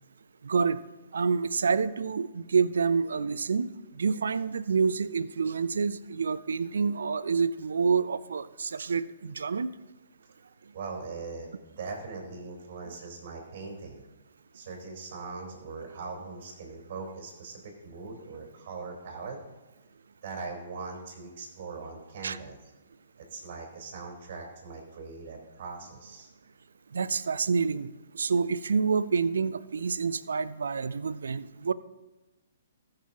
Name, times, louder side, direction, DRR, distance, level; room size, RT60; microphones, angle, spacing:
voice 1, 0.4-0.8 1.1-3.7 4.0-9.7 22.2-22.4 26.9-31.7, right 5 dB, 65° right, 16 dB, 0.5 m, -28 dB
voice 2, 10.7-14.0 14.5-19.4 20.2-22.6 23.3-26.3, right 4 dB, 45° right, 0 dB, 4.0 m, -41 dB
20.0 x 6.7 x 2.9 m, 1.1 s
figure-of-eight pair, 120°, 0 cm